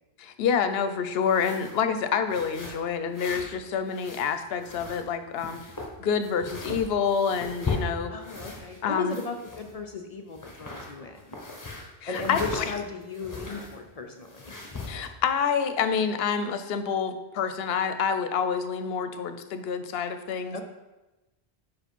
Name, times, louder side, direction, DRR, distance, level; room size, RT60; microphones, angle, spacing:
voice 1, 0.2-5.6 6.0-8.1 8.8-9.1 12.0-12.4 14.9-20.6, left 6 dB, 75° left, 10 dB, 0.8 m, -27 dB
sound 1, 1.2-1.8 2.3-3.6 3.8-5.1 5.4-8.8 9.1-10.0 10.3-13.8 14.2-15.1, left 3 dB, 20° left, 0.9 m, -38 dB
voice 2, 8.1-11.4 12.1-14.5 20.5-20.6, left 4 dB, 45° left, 4 dB, 0.5 m, -36 dB
5.1 x 4.9 x 5.2 m, 1.0 s
omnidirectional pair, 1.1 m